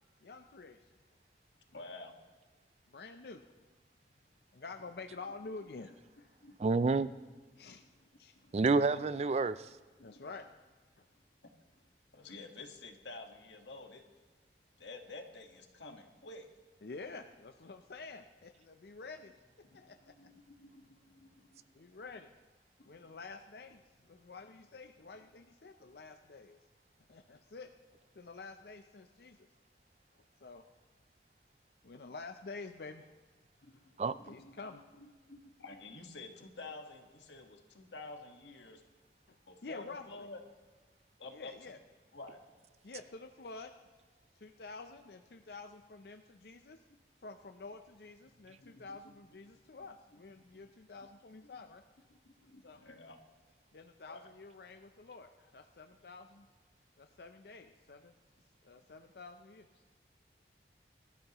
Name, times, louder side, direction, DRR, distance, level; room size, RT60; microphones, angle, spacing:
voice 1, 0.2-0.9 2.9-3.4 4.5-6.3 7.6-7.8 8.2-8.3 10.0-10.5 11.0-11.1 16.8-20.1 21.7-22.3 22.9-23.8 24.1-26.6 27.1-27.7 28.1-29.5 30.4-30.6 31.8-33.1 34.2-34.8 39.3-39.4 39.6-40.3 41.3-41.8 42.8-43.7 44.4-46.8 47.2-51.8 52.6-52.8 53.7-56.5 57.0-58.1 58.6-59.7, left 3 dB, 60° left, 0.6 m, -49 dB
voice 2, 1.7-2.1 6.4-6.7 7.6-8.1 8.4-8.7 10.0-10.2 12.1-14.0 14.8-16.4 19.6-21.7 22.8-23.0 33.6-38.8 39.5-40.4 41.2-41.7 42.1-42.4 48.5-48.8 49.8-49.9 50.6-50.7 52.2-53.2 54.1-54.3, left 3 dB, 85° left, 1.5 m, -50 dB
voice 3, 6.6-7.1 8.5-9.7 34.0-34.2, right 3 dB, 35° right, 0.3 m, -28 dB
23.0 x 12.5 x 3.0 m
head